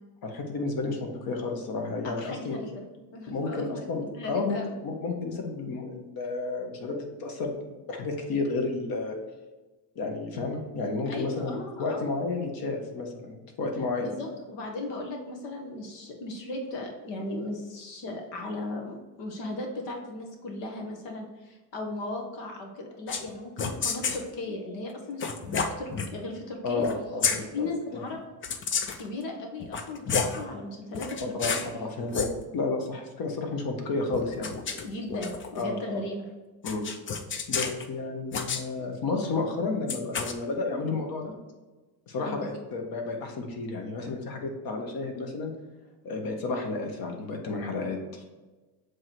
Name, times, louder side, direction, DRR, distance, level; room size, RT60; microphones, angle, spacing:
voice 1, 0.2-2.6 3.3-4.6 4.8-9.2 9.9-14.1 26.6-28.0 31.3-34.5 35.5-36.0 36.6-36.9 37.5-41.3 42.1-45.5 46.0-48.2, left 3 dB, 45° left, 3 dB, 1.5 m, -32 dB
voice 2, 2.0-2.8 3.1-3.9 4.1-4.7 11.1-12.2 14.0-26.9 27.3-28.2 28.9-31.6 34.8-36.3 42.2-42.4, left 2 dB, 60° left, 2 dB, 1.5 m, -36 dB
sound 1, 23.1-23.3 23.6-24.2 25.2-26.1 26.8-27.0 27.2-27.4 28.4-29.1 29.6-30.4 30.9-31.7 32.0-32.3 34.1-35.6 36.7-37.9 38.3-38.6 39.9-40.3, left 5 dB, 25° left, 0.5 m, -30 dB
7.3 x 3.2 x 4.6 m, 1.2 s
supercardioid pair, 95°, 50 cm